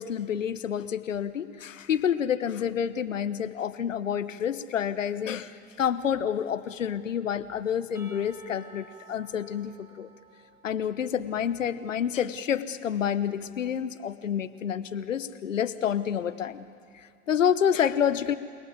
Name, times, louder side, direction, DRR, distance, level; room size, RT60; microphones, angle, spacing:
voice 1, 0.0-10.1 10.6-16.7 16.9-18.3, left 8 dB, 85° left, 13 dB, 1.0 m, -28 dB
Percussion / Church bell, 7.9-11.6, right 3 dB, 5° right, 3.1 m, -53 dB
29.5 x 18.5 x 9.4 m, 2.3 s
hypercardioid pair, 85°, 37 cm